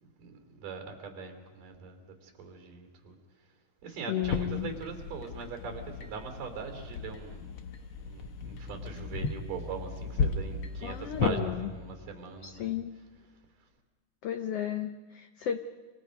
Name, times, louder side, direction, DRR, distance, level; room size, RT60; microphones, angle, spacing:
voice 1, 0.0-3.2 3.8-7.5 8.1-12.8, right 5 dB, 80° right, 4 dB, 4.9 m, -41 dB
voice 2, 4.1-4.7 10.8-11.7 12.4-13.0 14.2-15.6, left 10 dB, 75° left, 7 dB, 1.4 m, -33 dB
sound 1, 4.2-11.4, left 5 dB, 55° left, 1.6 m, -35 dB
sound 2, 5.6-13.1, left 1 dB, 30° right, 2.0 m, -47 dB
27.5 x 27.0 x 5.3 m, 1.4 s
omnidirectional pair, 3.8 m